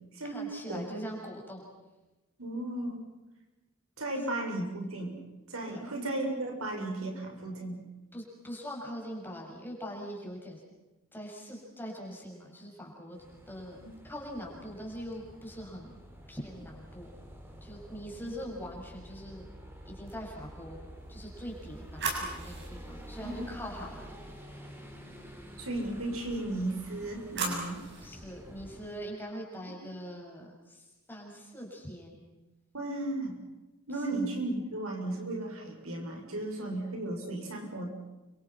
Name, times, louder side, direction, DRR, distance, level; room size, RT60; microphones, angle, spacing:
voice 1, 0.2-1.7 5.7-5.8 8.1-10.6 11.1-13.2 13.5-13.8 14.0-16.0 16.3-17.1 17.6-19.5 19.9-24.1 28.0-32.2 33.9-34.2, equal, 10° left, -1 dB, 7.2 m, -42 dB
voice 2, 2.4-3.0 4.0-5.2 5.5-7.8 13.8-13.9 23.2-23.5 25.6-27.8 32.7-33.3 33.9-37.9, right 1 dB, 75° right, 1 dB, 7.2 m, -35 dB
sound 1, 13.1-28.9, equal, 10° right, 4.4 m, -49 dB
sound 2, 21.2-24.2 26.6-28.2, right 3 dB, 55° right, 7.4 m, -39 dB
30.0 x 26.5 x 6.0 m, 1.1 s
head